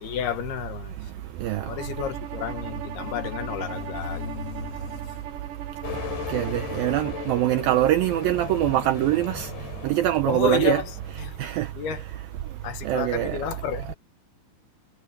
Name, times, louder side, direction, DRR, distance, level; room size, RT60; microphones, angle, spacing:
voice 1, 0.0-1.0 1.6-5.3 10.2-10.9 11.2-11.4 11.7-12.1 12.6-14.0, left 9 dB, 70° left, 3.3 m, -31 dB
Bowed string instrument, 1.8-7.4, right 10 dB, 60° right, 2.8 m, -39 dB
sound 1, 5.8-11.4, left 8 dB, 85° left, 7.1 m, -37 dB
voice 2, 6.3-9.5 9.8-10.8 11.4-11.7 12.9-13.4, right 14 dB, 80° right, 2.1 m, -23 dB
omnidirectional pair, 5.0 m